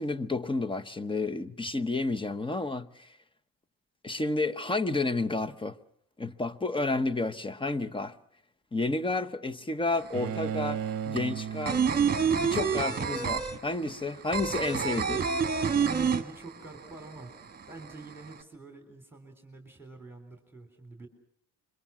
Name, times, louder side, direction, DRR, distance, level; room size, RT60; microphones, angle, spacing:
voice 1, 0.0-3.1 4.0-5.8 6.2-8.1 8.7-11.8 12.4-15.2, left 3 dB, 15° left, 0.9 m, -31 dB
sound 1, 9.9-10.0 10.3-16.9 17.1-17.2 17.5-18.3, right 6 dB, 25° right, 1.6 m, -27 dB
Bowed string instrument, 10.1-13.2, right 9 dB, 40° right, 1.0 m, -36 dB
voice 2, 15.7-17.4 17.7-21.1, right 3 dB, 5° right, 3.8 m, -46 dB
26.5 x 23.5 x 6.0 m
cardioid pair, 115°, 34 cm